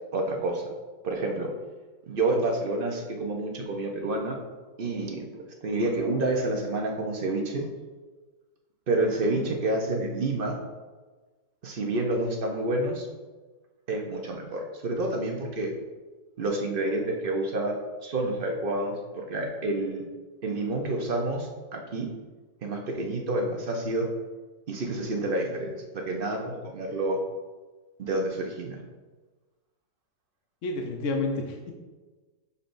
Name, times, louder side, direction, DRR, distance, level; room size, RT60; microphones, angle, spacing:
voice 1, 0.1-0.6 1.0-1.5 2.1-4.4 4.8-5.3 5.6-7.6 8.9-10.6 11.6-13.1 13.9-15.7 16.4-20.1 20.4-22.1 22.6-24.1 24.7-27.2 28.0-28.8, right 2 dB, 50° right, 1 dB, 0.6 m, -29 dB
voice 2, 30.6-31.7, left 3 dB, 60° left, 2 dB, 0.9 m, -30 dB
6.7 x 5.7 x 2.5 m, 1.3 s
omnidirectional pair, 1.8 m